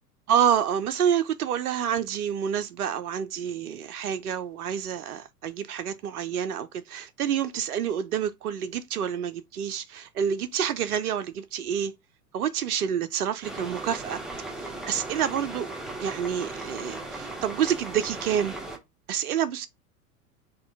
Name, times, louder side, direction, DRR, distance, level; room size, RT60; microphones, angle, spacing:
voice 1, 0.3-11.9 12.3-14.2 14.5-15.7 16.0-18.6 19.1-19.7, right 8 dB, 70° right, 0.6 m, -28 dB
sound 1, 13.4-18.8, right 2 dB, ahead, 0.7 m, -37 dB
4.2 x 2.3 x 4.6 m
figure-of-eight pair, 90°, 46 cm